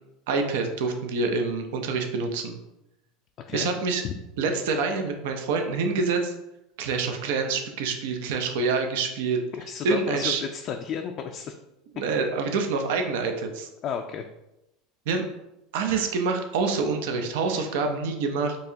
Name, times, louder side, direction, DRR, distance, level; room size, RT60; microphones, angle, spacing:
voice 1, 0.3-2.6 3.5-4.0 4.4-6.3 6.8-9.4 9.8-10.4 11.9-13.7 15.1-15.2 15.7-18.6, right 4 dB, 75° right, 5 dB, 0.5 m, -26 dB
voice 2, 9.5-11.5 13.8-14.3, left 7 dB, 50° left, 4 dB, 0.3 m, -32 dB
4.6 x 2.8 x 2.7 m, 0.90 s
hypercardioid pair, 95°, 0 cm